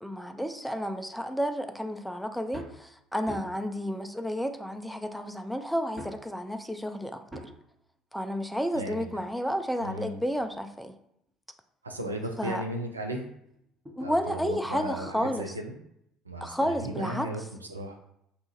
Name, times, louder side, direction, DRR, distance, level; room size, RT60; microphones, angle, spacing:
voice 1, 0.0-7.2 8.1-10.9 12.4-12.6 14.0-15.5 16.4-17.3, equal, ahead, 7 dB, 0.3 m, -31 dB
sound 1, 2.5-2.8 3.3-3.7 4.7-4.8 6.0-6.3 7.3-7.6 9.0-10.6 11.3-11.4 12.0-12.1 12.4-12.5 12.9-14.2 15.1-15.4 16.7-16.8, equal, 15° right, 0.9 m, -45 dB
voice 2, 8.7-9.1 9.8-10.2 11.8-13.3 14.0-15.7 16.2-18.0, right 1 dB, 85° right, 2 dB, 0.4 m, -36 dB
2.8 x 2.4 x 3.9 m, 0.76 s
figure-of-eight pair, 60°, 0 cm